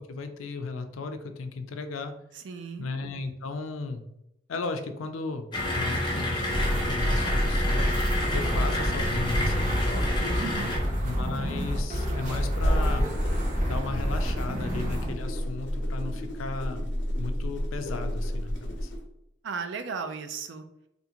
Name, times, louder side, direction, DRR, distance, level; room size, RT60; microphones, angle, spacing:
voice 1, 0.0-2.1 2.8-4.0 4.5-5.5 5.7-7.9 8.3-10.4 11.0-13.1 13.6-16.9 17.2-18.9, left 3 dB, 90° left, 8 dB, 0.4 m, -35 dB
voice 2, 2.3-2.9 10.4-10.7 19.4-20.6, right 5 dB, 65° right, 8 dB, 0.4 m, -35 dB
sound 1, 5.5-10.8, left 1 dB, 25° left, 0.7 m, -30 dB
sound 2, 6.5-15.2, equal, 35° right, 0.7 m, -28 dB
sound 3, 12.5-19.0, equal, 60° left, 0.8 m, -31 dB
3.5 x 2.4 x 2.9 m, 0.84 s
head